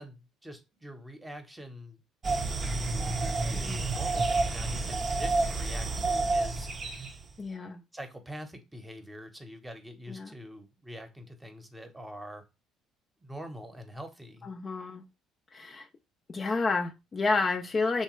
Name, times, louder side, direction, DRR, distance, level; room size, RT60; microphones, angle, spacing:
voice 1, 0.0-2.0 3.4-6.7 7.9-12.4 13.2-14.5, equal, 10° right, 0.8 m, -44 dB
sound 1, 2.2-7.2, right 3 dB, 40° right, 0.5 m, -29 dB
voice 2, 7.4-7.8 10.1-10.3 14.4-15.0 15.5-15.9 16.3-18.0, left 3 dB, 35° left, 0.4 m, -30 dB
2.9 x 2.2 x 3.0 m
hypercardioid pair, 65°, 0 cm